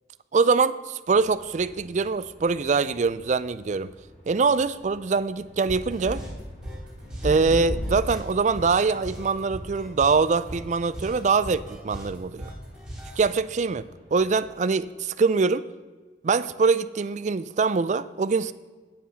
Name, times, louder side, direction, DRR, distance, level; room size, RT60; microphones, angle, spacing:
voice 1, 0.3-3.9 4.3-6.2 7.2-12.5 13.2-15.6 16.2-18.5, right 4 dB, 40° right, 16 dB, 0.4 m, -23 dB
sound 1, 1.1-14.7, equal, 35° left, 2.2 m, -41 dB
sound 2, 5.7-13.2, equal, 5° right, 3.9 m, -39 dB
9.4 x 7.0 x 6.2 m, 1.4 s
head